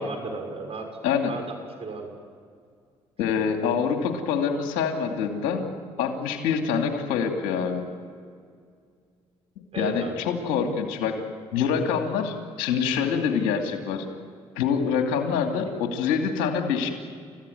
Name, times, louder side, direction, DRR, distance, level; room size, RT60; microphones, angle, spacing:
voice 1, 0.0-0.9 1.2-1.5 1.8-2.1 9.7-10.2 15.7-15.8, right 3 dB, 50° right, 4 dB, 6.3 m, -34 dB
voice 2, 3.2-5.6 6.0-7.8 9.8-11.2 11.5-14.0 14.6-16.9, left 6 dB, 85° left, 4 dB, 2.7 m, -25 dB
30.0 x 15.5 x 9.4 m, 2.2 s
supercardioid pair, 65°, 13 cm